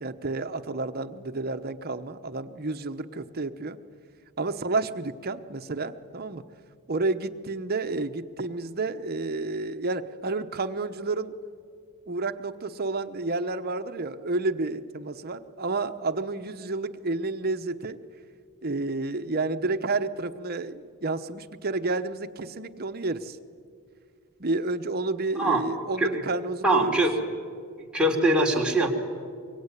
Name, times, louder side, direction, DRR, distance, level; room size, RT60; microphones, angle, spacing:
voice 1, 0.0-3.8 4.4-6.4 6.9-11.4 12.1-18.0 18.6-23.4 24.4-27.0, right 3 dB, 45° right, 9 dB, 1.0 m, -30 dB
voice 2, 26.6-27.1 27.9-28.9, right 1 dB, 5° right, -1 dB, 3.3 m, -22 dB
24.5 x 23.5 x 9.9 m, 2.2 s
head